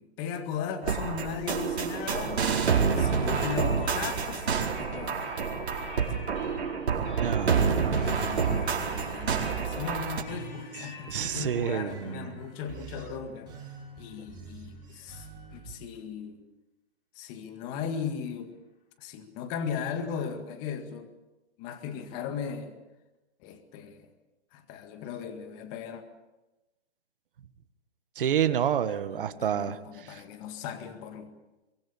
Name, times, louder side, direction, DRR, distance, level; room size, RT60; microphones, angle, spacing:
voice 1, 0.0-2.5 2.9-4.5 4.8-5.5 6.4-6.6 7.9-13.6 14.0-16.4 17.2-18.5 19.0-21.1 21.6-22.7 23.4-24.1 24.5-26.0 29.1-31.3, left 7 dB, 25° left, 8 dB, 2.0 m, -37 dB
sound 1, 0.8-10.2, right 6 dB, 70° right, 4.7 m, -28 dB
sound 2, 2.0-15.6, left 4 dB, 45° left, 6.1 m, -47 dB
voice 2, 7.2-8.1 11.1-12.4 28.1-30.2, right 9 dB, 55° right, 11 dB, 1.7 m, -29 dB
sound 3, 7.7-15.7, right 6 dB, 15° right, 3.7 m, -45 dB
23.5 x 22.5 x 7.3 m, 1.0 s
hypercardioid pair, 160°, 33 cm